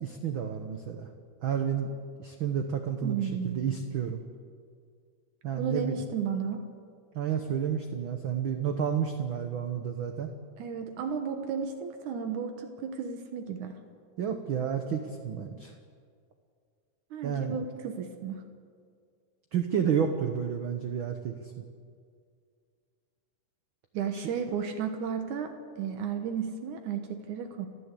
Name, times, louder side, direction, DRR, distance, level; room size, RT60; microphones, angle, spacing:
voice 1, 0.0-1.1 1.4-1.9 2.2-4.2 5.4-6.0 7.1-10.3 14.2-15.7 17.2-17.6 19.5-21.5 24.1-24.3, right 8 dB, 60° right, 5 dB, 1.4 m, -31 dB
voice 2, 3.0-3.7 5.6-6.6 10.6-13.7 17.1-18.4 23.9-27.7, right 7 dB, 85° right, 5 dB, 2.7 m, -33 dB
29.5 x 11.0 x 8.3 m, 2.1 s
omnidirectional pair, 3.4 m